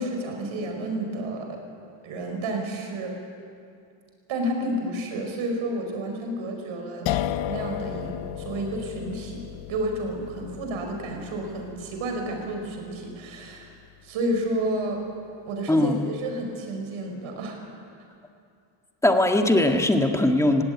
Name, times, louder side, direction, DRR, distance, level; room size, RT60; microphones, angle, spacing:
voice 1, 0.0-1.6 2.0-3.1 4.3-7.1 7.5-9.4 9.7-13.7 14.0-15.0 15.5-17.6, right 1 dB, 70° right, 2 dB, 5.6 m, -30 dB
sound 1, 7.1-14.0, left 12 dB, 60° left, 0.8 m, -34 dB
voice 2, 19.0-20.6, left 1 dB, 5° left, 3 dB, 1.8 m, -20 dB
18.0 x 17.0 x 9.6 m, 2.4 s
cardioid pair, 110°, 50 cm